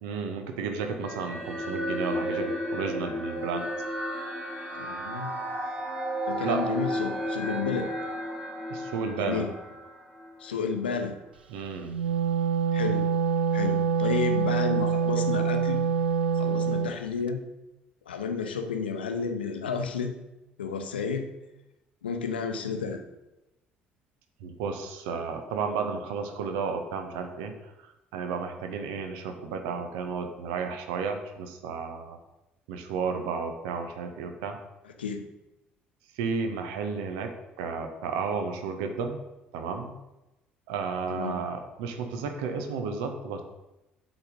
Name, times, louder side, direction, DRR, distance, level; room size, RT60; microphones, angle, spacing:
voice 1, 0.0-3.7 6.4-6.7 8.7-9.4 11.5-11.9 24.4-27.5 28.1-32.2 32.7-34.6 36.2-37.3 37.6-39.2 39.5-40.0 40.7-43.4, right 5 dB, 65° right, 6 dB, 0.8 m, -32 dB
sound 1, 1.0-10.5, equal, 15° right, 2.7 m, -33 dB
voice 2, 4.7-5.3 6.3-7.9 9.2-9.5 10.4-11.1 12.7-13.0 13.5-15.8 16.4-17.4 18.1-20.1 20.6-21.3 22.0-23.0 35.0-35.2 41.1-41.4, left 5 dB, 80° left, 5 dB, 0.7 m, -31 dB
Wind instrument woodwind instrument, 11.8-16.9, right 6 dB, 80° right, 0.3 m, -25 dB
8.1 x 4.1 x 5.3 m, 0.97 s
figure-of-eight pair, 50°, 5 cm